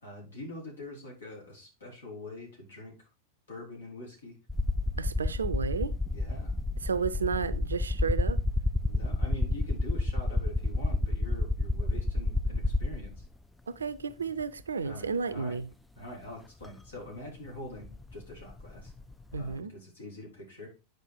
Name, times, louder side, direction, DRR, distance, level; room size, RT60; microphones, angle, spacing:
voice 1, 0.0-3.1 3.5-4.4 6.1-6.5 8.8-13.2 14.8-15.6 15.9-18.9 19.3-20.7, left 1 dB, 70° left, 4.4 m, -44 dB
sound 1, 4.5-13.3 14.4-14.5 16.6-16.7 17.0-19.5, left 2 dB, 5° left, 0.4 m, -30 dB
voice 2, 5.0-5.9 6.8-8.4 13.7-15.7 19.3-19.7, right 5 dB, 70° right, 0.6 m, -32 dB
9.2 x 5.2 x 4.6 m
figure-of-eight pair, 90°, 0 cm